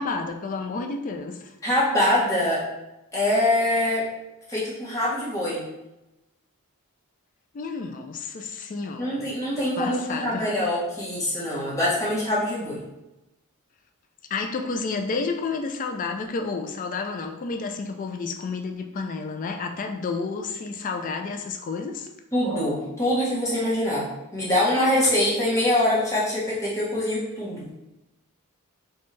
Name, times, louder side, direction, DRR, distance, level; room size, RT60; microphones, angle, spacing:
voice 1, 0.0-1.5 7.5-9.3 9.8-10.5 14.3-22.1, left 4 dB, 35° left, 5 dB, 0.3 m, -30 dB
voice 2, 1.6-2.6 3.1-4.0 4.5-5.6 9.0-12.8 22.3-24.1 24.3-27.7, left 1 dB, 15° left, -7 dB, 1.0 m, -24 dB
4.3 x 2.3 x 3.1 m, 0.95 s
head